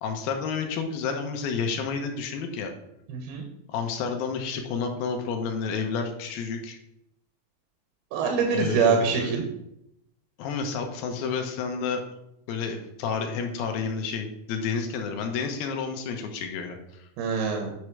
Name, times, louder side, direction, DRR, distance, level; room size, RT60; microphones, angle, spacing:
voice 1, 0.0-2.7 3.7-6.8 8.5-9.4 10.4-12.0 12.5-17.1, left 5 dB, 80° left, 4 dB, 2.8 m, -30 dB
voice 2, 3.1-3.4 8.1-9.4 17.2-17.7, right 5 dB, 85° right, 2 dB, 2.9 m, -24 dB
9.5 x 3.3 x 6.0 m, 0.81 s
omnidirectional pair, 4.2 m